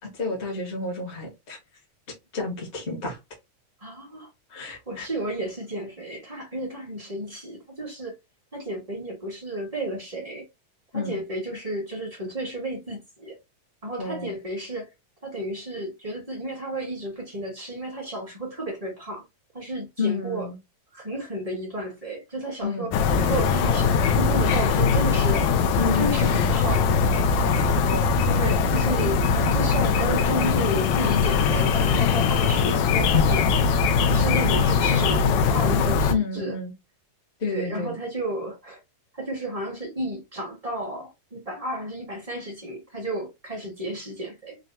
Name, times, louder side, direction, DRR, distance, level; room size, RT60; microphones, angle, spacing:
voice 1, 0.0-1.6 2.3-3.2 4.5-5.1 10.9-11.2 14.0-14.3 20.0-20.6 22.6-22.9 25.8-26.3 27.4-28.2 36.1-36.7 37.4-37.9, left 4 dB, 50° left, 0.7 m, -30 dB
voice 2, 3.8-4.3 4.9-8.1 8.5-10.4 10.9-13.4 13.8-14.9 15.2-19.2 19.5-20.5 20.9-25.4 25.9-26.9 27.4-27.5 28.3-33.5 34.1-36.5 37.5-38.8 39.1-44.6, right 1 dB, 30° right, 0.6 m, -32 dB
sound 1, 22.9-36.1, left 5 dB, 90° left, 1.5 m, -21 dB
5.4 x 2.2 x 2.7 m
omnidirectional pair, 3.8 m